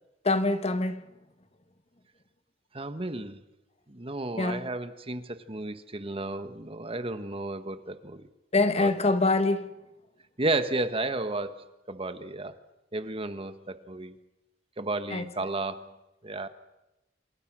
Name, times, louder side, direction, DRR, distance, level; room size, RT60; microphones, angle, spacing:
voice 1, 0.2-1.1 4.4-4.7 8.5-9.7 15.1-15.5, left 2 dB, 35° left, 1.3 m, -25 dB
voice 2, 2.7-3.4 3.9-8.3 8.8-8.9 10.4-12.5 12.9-14.1 14.8-15.9 16.2-16.5, right 2 dB, 30° right, 1.4 m, -33 dB
27.5 x 26.5 x 6.2 m
head